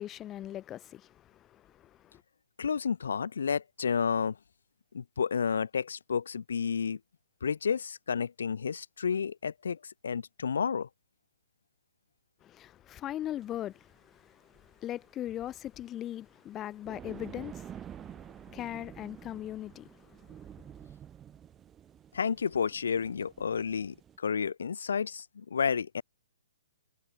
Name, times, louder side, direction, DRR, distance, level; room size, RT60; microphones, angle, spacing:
voice 1, 0.0-2.2 12.4-20.4, left 12 dB, 15° left, 1.5 m, -40 dB
voice 2, 2.6-4.4 4.9-7.0 7.4-10.9 22.1-26.0, left 6 dB, 75° left, 0.9 m, -31 dB
sound 1, 13.4-13.7 14.5-14.7 14.9-15.0 16.7-24.2, right 9 dB, 10° right, 2.9 m, -49 dB
hypercardioid pair, 170°, 0 cm